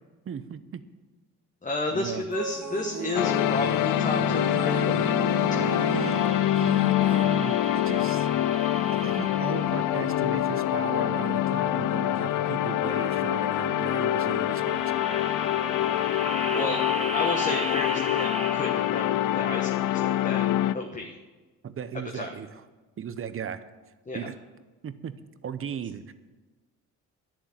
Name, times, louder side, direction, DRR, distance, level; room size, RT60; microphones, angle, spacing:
voice 1, 0.3-0.8 1.9-2.2 5.9-6.1 6.5-8.3 9.0-14.9 21.6-22.6 23.0-23.6 24.1-24.4 24.8-25.1 25.4-26.1, right 7 dB, 45° right, 13 dB, 0.9 m, -36 dB
voice 2, 1.6-5.1 5.5-5.7 16.5-20.5 20.7-21.1 22.1-22.3 24.1-24.3, left 2 dB, 25° left, 2 dB, 1.3 m, -32 dB
sound 1, 2.3-7.0, right 4 dB, 70° right, 2.7 m, -34 dB
sound 2, 3.1-20.7, left 12 dB, 85° left, 0.6 m, -25 dB
sound 3, 5.8-10.6 14.4-19.2, right 5 dB, 20° right, 0.5 m, -39 dB
11.0 x 7.4 x 9.1 m, 1.3 s
cardioid pair, 90°, 30 cm